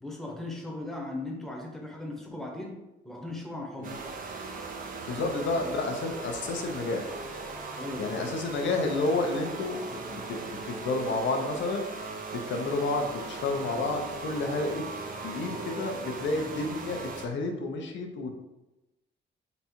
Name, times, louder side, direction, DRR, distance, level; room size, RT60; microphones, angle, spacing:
voice 1, 0.0-2.8 3.0-3.9 5.1-5.3 7.8-8.3, left 2 dB, ahead, -1 dB, 1.0 m, -38 dB
sound 1, 3.8-17.3, right 3 dB, 45° right, 0.7 m, -39 dB
voice 2, 5.1-7.1 8.0-11.9 12.3-14.8 15.2-18.4, left 2 dB, 70° left, 3 dB, 0.7 m, -30 dB
4.0 x 2.3 x 4.3 m, 1.0 s
cardioid pair, 90°, 20 cm